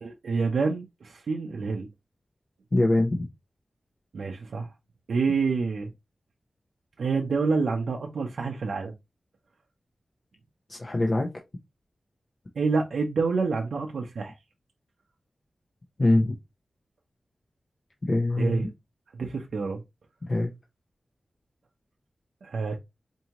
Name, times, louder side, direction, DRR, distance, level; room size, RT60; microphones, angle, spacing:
voice 1, 0.0-1.9 4.1-4.7 5.1-5.9 7.0-8.9 12.6-14.3 18.4-18.7 19.1-19.8 22.4-22.8, right 4 dB, 85° right, 0.6 m, -27 dB
voice 2, 2.7-3.3 10.7-11.3 16.0-16.3 18.0-18.7 20.3-20.5, left 2 dB, 40° left, 0.7 m, -23 dB
4.5 x 2.7 x 2.9 m
wide cardioid pair, 85°, 0 cm